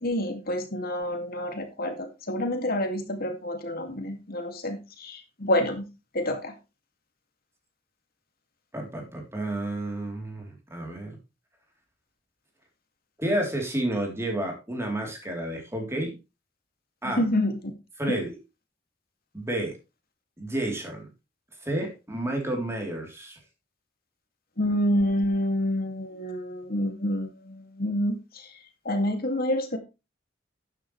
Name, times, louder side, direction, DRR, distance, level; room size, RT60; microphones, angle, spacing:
voice 1, 0.0-5.8 6.1-6.5 17.0-17.6 18.1-18.2 24.6-28.2 28.8-29.8, left 1 dB, 50° left, 5 dB, 2.4 m, -28 dB
voice 2, 8.7-11.2 13.2-16.2 17.0-17.2 18.0-18.4 19.3-19.8 20.4-21.1 21.6-23.4, right 1 dB, 15° right, 1 dB, 3.6 m, -30 dB
12.0 x 9.3 x 3.3 m, 0.27 s
head